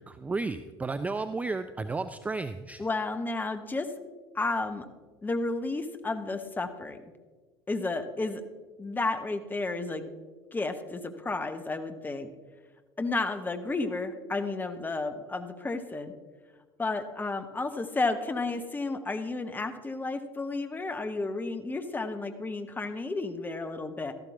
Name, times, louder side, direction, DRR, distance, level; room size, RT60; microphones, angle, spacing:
voice 1, 0.0-2.8, right 3 dB, 10° right, 11 dB, 0.4 m, -33 dB
voice 2, 2.8-3.9 4.3-4.9 5.2-7.0 7.7-8.4 8.8-10.1 10.5-12.3 13.0-16.1 16.8-24.1, left 3 dB, 15° left, 8 dB, 1.0 m, -32 dB
13.0 x 11.5 x 3.6 m, 1.4 s
figure-of-eight pair, 70°, 13 cm